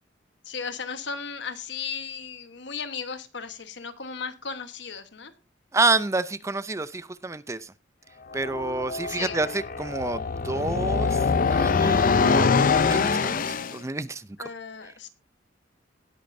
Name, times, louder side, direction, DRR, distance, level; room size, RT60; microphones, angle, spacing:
voice 1, 0.4-5.3 9.1-9.4 14.4-15.1, left 6 dB, 65° left, 10 dB, 1.3 m, -36 dB
voice 2, 5.7-7.7 8.3-12.5 12.8-14.3, right 3 dB, 15° right, 15 dB, 0.5 m, -29 dB
sound 1, 8.3-13.8, left 5 dB, 45° left, 0.5 m, -24 dB
18.5 x 8.6 x 2.7 m, 0.28 s
head